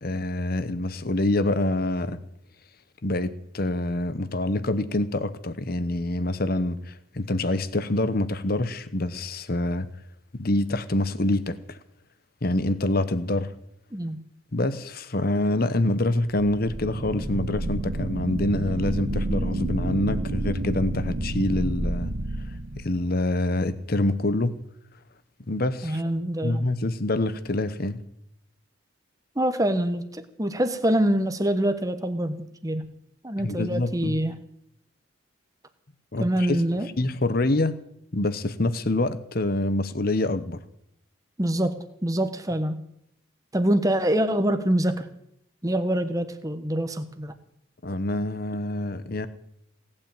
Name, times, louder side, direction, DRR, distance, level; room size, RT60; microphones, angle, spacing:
voice 1, 0.0-2.2 3.0-9.9 10.4-11.8 12.4-13.5 14.5-22.1 22.8-24.6 25.5-26.0 26.4-28.0 33.4-34.2 36.1-36.6 37.0-37.8 38.1-40.6 47.8-49.3, left 2 dB, 50° left, 1.0 m, -26 dB
sound 1, 16.5-23.3, right 1 dB, 80° right, 1.7 m, -30 dB
voice 2, 25.8-26.7 29.4-32.4 32.6-32.8 33.2-34.3 36.2-36.9 41.4-42.8 43.5-45.1 45.6-47.3, right 1 dB, 15° right, 1.2 m, -25 dB
18.0 x 8.8 x 8.9 m
head